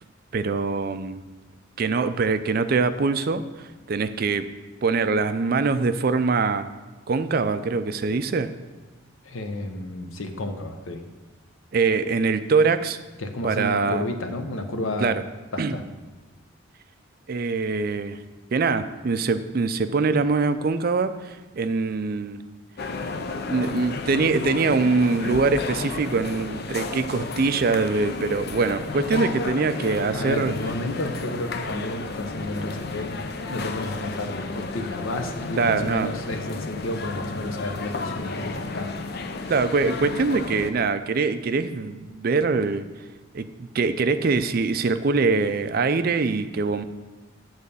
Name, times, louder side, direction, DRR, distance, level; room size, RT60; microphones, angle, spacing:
voice 1, 0.3-1.2 1.8-4.5 4.8-6.7 7.1-8.5 11.7-13.0 13.4-14.0 15.0-15.2 15.6-15.8 17.3-18.2 18.5-22.4 23.5-30.5 35.6-36.1 39.5-42.8 43.3-46.8, right 4 dB, 50° right, 11 dB, 0.4 m, -23 dB
voice 2, 9.2-11.0 13.2-15.2 15.5-15.8 30.1-38.9, left 1 dB, 85° left, 6 dB, 0.9 m, -32 dB
sound 1, 22.8-40.7, left 3 dB, 50° left, 0.6 m, -32 dB
8.9 x 4.1 x 6.9 m, 1.2 s
head